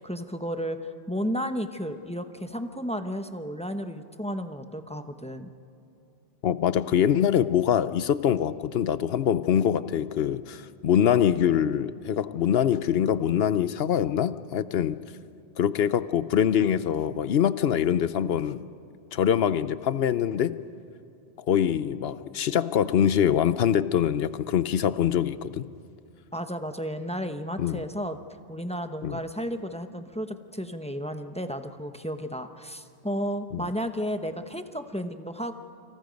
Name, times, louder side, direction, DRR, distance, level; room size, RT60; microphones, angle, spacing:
voice 1, 0.0-5.5 26.3-28.2 28.5-35.6, equal, 5° left, 7 dB, 0.8 m, -33 dB
voice 2, 6.4-15.0 15.6-18.6 19.1-20.6 21.5-25.6 27.6-27.8 29.0-29.2 33.5-33.7, left 9 dB, 65° left, 14 dB, 0.9 m, -24 dB
29.0 x 26.0 x 5.2 m, 2.6 s
omnidirectional pair, 1.2 m